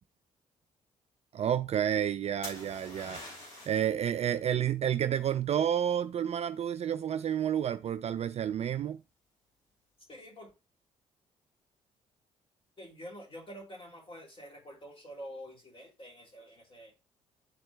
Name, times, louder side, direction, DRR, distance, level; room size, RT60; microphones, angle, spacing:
voice 1, 1.3-3.2 3.7-9.0, right 9 dB, 40° right, 0.4 m, -30 dB
sound 1, 2.4-3.9 7.6-8.0, left 1 dB, 75° left, 3.4 m, -45 dB
voice 2, 10.1-10.5 12.8-16.9, equal, 30° left, 3.0 m, -47 dB
10.0 x 4.3 x 2.3 m
figure-of-eight pair, 40°, 18 cm